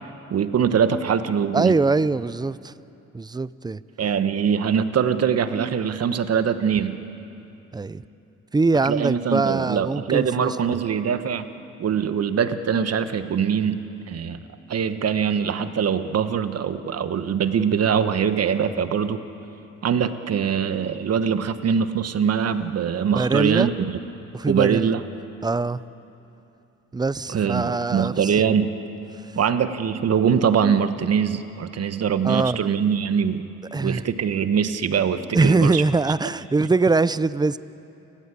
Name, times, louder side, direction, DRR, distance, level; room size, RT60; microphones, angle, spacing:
voice 1, 0.3-1.7 4.0-7.0 8.8-11.5 11.8-14.4 14.7-19.2 19.8-23.7 24.5-25.0 27.3-28.8 29.3-33.4 33.8-35.8, right 7 dB, 55° right, 1.3 m, -23 dB
voice 2, 1.5-2.7 3.1-3.8 7.7-8.0 8.5-10.8 23.1-23.7 24.3-24.9 25.4-25.8 26.9-28.3 32.2-32.6 33.7-34.0 35.3-37.6, right 3 dB, 15° right, 0.5 m, -22 dB
29.5 x 15.0 x 8.4 m
cardioid pair, 90°, 30 cm